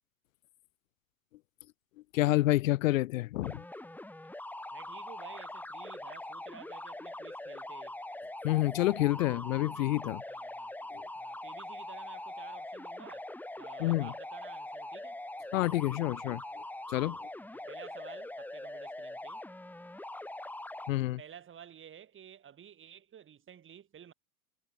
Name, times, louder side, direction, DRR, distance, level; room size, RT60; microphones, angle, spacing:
voice 1, 2.1-3.6 8.4-10.2 10.9-11.0 13.8-14.1 15.5-16.4 16.9-17.2 20.9-21.2, left 17 dB, 60° left, 1.7 m, -28 dB
sound 1, 3.4-20.9, left 1 dB, 5° left, 1.9 m, -43 dB
voice 2, 4.7-8.0 10.3-10.7 11.1-13.3 13.6-15.2 17.1-19.4 21.2-24.1, right 9 dB, 25° right, 6.8 m, -52 dB
figure-of-eight pair, 90°, 45 cm